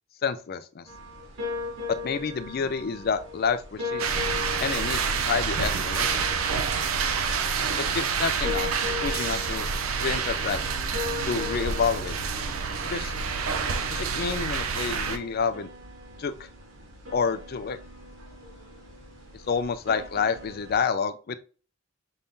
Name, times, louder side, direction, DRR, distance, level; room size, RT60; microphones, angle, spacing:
voice 1, 0.2-0.9 2.0-4.1 4.6-5.0 5.2-6.3 7.8-9.7 10.0-10.6 11.2-12.1 12.9-13.1 13.9-15.7 16.2-16.5 17.1-17.8 19.5-21.4, left 5 dB, 50° left, 12 dB, 0.4 m, -29 dB
sound 1, 0.9-20.8, left 3 dB, 65° right, 1.4 m, -39 dB
sound 2, 4.0-15.2, right 5 dB, 85° right, 0.5 m, -28 dB
5.5 x 3.6 x 2.6 m, 0.39 s
head